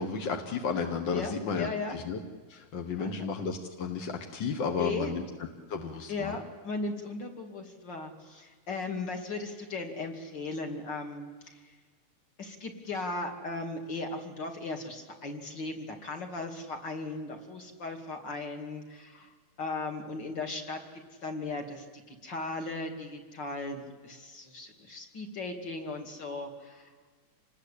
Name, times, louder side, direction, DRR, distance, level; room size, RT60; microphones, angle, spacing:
voice 1, 0.0-2.2 2.5-5.2 5.7-6.4, left 5 dB, 50° left, 5 dB, 1.4 m, -33 dB
voice 2, 1.1-2.0 3.0-3.1 4.8-5.1 6.1-11.8 12.4-20.8 21.2-26.9, left 3 dB, 35° left, 4 dB, 2.9 m, -37 dB
27.0 x 20.5 x 8.5 m, 1.4 s
omnidirectional pair, 3.6 m